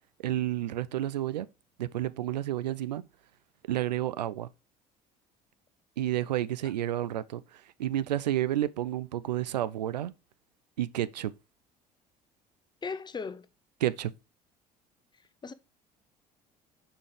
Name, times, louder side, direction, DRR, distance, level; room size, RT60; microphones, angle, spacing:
voice 1, 0.2-1.5 1.8-3.0 3.7-4.5 6.0-7.4 7.8-10.1 10.8-11.3 13.8-14.1, right 13 dB, 75° right, 0.4 m, -30 dB
voice 2, 12.8-13.5 15.4-15.5, left 5 dB, 20° left, 0.6 m, -36 dB
6.7 x 5.0 x 3.6 m
figure-of-eight pair, 55°, 21 cm